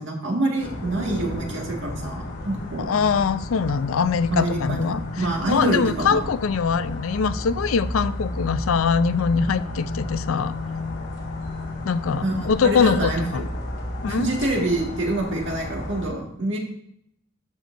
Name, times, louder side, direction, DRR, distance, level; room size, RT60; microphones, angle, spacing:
voice 1, 0.0-2.9 4.3-6.2 12.2-13.4 14.1-16.6, right 2 dB, 60° right, 0 dB, 1.9 m, -26 dB
sound 1, 0.6-16.1, left 2 dB, 55° left, 2.4 m, -32 dB
voice 2, 2.8-5.0 5.5-10.5 11.9-13.5 14.0-14.3, left 5 dB, 75° left, 14 dB, 0.4 m, -22 dB
12.5 x 6.7 x 2.6 m, 0.74 s
head